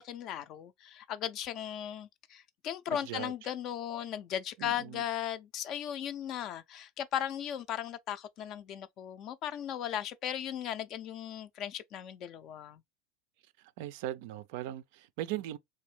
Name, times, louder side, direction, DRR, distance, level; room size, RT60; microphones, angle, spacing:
voice 1, 0.0-12.8, left 10 dB, 50° left, 0.4 m, -37 dB
voice 2, 2.9-3.5 4.6-5.0 13.6-15.6, right 13 dB, 65° right, 0.3 m, -39 dB
3.2 x 2.6 x 3.1 m
hypercardioid pair, 80°, 0 cm